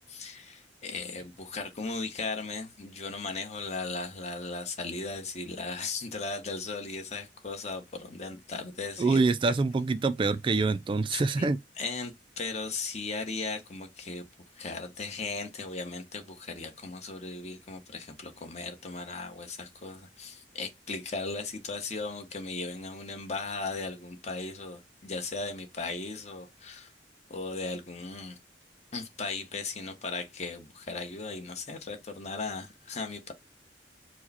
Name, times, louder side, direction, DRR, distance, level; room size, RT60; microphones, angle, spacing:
voice 1, 0.1-9.2 9.5-9.6 11.1-11.5 11.8-14.2 14.6-26.9 27.3-28.4 28.9-33.3, left 3 dB, 40° left, 1.1 m, -37 dB
voice 2, 9.0-11.6, right 3 dB, 30° right, 0.3 m, -25 dB
4.7 x 2.2 x 4.2 m
head